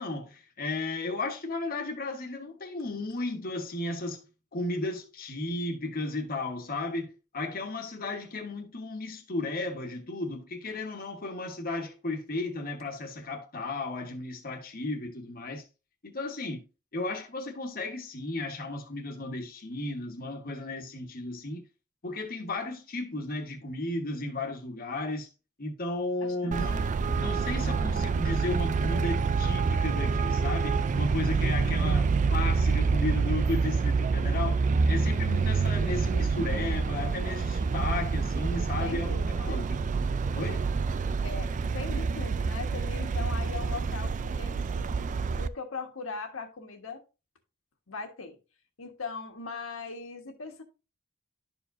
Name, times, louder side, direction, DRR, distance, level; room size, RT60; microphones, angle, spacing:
voice 1, 0.0-4.3 4.5-15.6 16.0-16.6 16.9-21.6 22.0-25.3 25.6-39.8 40.3-40.6, left 2 dB, 45° left, 1.3 m, -34 dB
Traffic noise roadway noise, 26.5-45.5, right 4 dB, 35° right, 0.3 m, -27 dB
voice 2, 38.8-39.6 41.2-45.1 45.4-47.0 47.9-48.4 48.8-50.6, left 4 dB, 70° left, 1.4 m, -40 dB
11.5 x 4.7 x 2.6 m
head